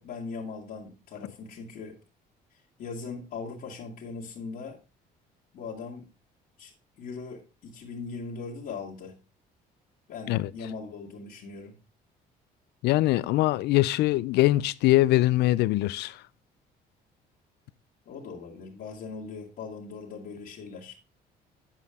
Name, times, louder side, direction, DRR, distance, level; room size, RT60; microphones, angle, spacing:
voice 1, 0.0-2.0 2.8-4.8 5.5-6.1 6.6-9.2 10.1-11.8 18.1-20.9, left 4 dB, 60° left, 1.9 m, -40 dB
voice 2, 12.8-16.2, left 17 dB, 80° left, 0.5 m, -23 dB
8.3 x 7.4 x 3.5 m
cardioid pair, 110°, 17 cm